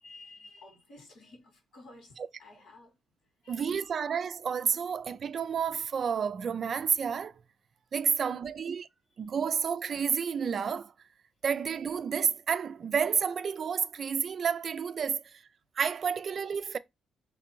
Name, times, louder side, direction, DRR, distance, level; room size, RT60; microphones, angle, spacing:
voice 1, 0.0-3.0 3.4-4.0 8.1-8.6, left 2 dB, 75° left, 2.2 m, -53 dB
voice 2, 3.5-7.3 7.9-8.9 9.2-10.9 11.4-15.4 15.8-16.8, right 7 dB, 50° right, 0.3 m, -30 dB
3.3 x 2.6 x 4.4 m
cardioid pair, 90°, 0 cm